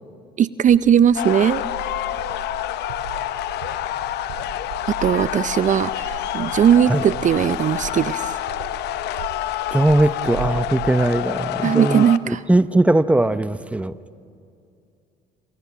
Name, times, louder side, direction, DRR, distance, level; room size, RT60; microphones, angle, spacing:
voice 1, 0.4-1.6 4.8-8.4 11.6-12.4, right 9 dB, 45° right, 16 dB, 0.6 m, -18 dB
sound 1, 0.7-10.9, right 11 dB, 85° right, 2.1 m, -38 dB
sound 2, 1.2-12.2, left 13 dB, 70° left, 0.9 m, -28 dB
voice 2, 9.7-14.0, right 2 dB, 5° right, 14 dB, 0.8 m, -19 dB
28.0 x 27.5 x 6.0 m, 2.5 s
hypercardioid pair, 65°, 18 cm